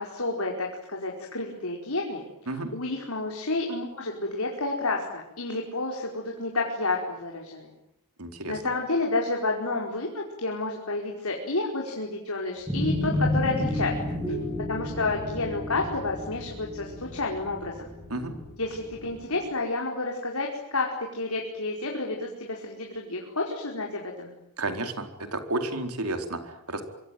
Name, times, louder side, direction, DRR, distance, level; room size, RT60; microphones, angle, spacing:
voice 1, 0.0-2.2 2.7-7.7 8.5-13.9 14.7-17.9 18.6-24.3, left 2 dB, 75° left, 0 dB, 4.9 m, -30 dB
voice 2, 8.2-8.6 18.1-18.3 24.6-25.0 25.3-26.8, right 2 dB, 80° right, 6 dB, 4.4 m, -31 dB
sound 1, 12.7-19.2, left 1 dB, 10° right, 6.5 m, -31 dB
26.0 x 24.5 x 9.3 m, 0.83 s
head